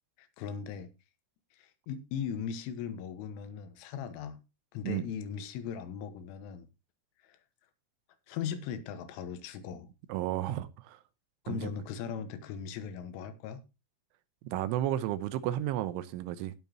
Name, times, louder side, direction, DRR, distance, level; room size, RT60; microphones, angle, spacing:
voice 1, 0.2-0.9 1.6-4.4 4.7-6.7 7.2-7.4 8.3-9.9 11.5-13.6, left 7 dB, 80° left, 3.7 m, -38 dB
voice 2, 10.1-11.0 11.5-11.6 14.4-16.5, right 13 dB, 80° right, 3.2 m, -32 dB
18.0 x 7.2 x 2.9 m
omnidirectional pair, 5.7 m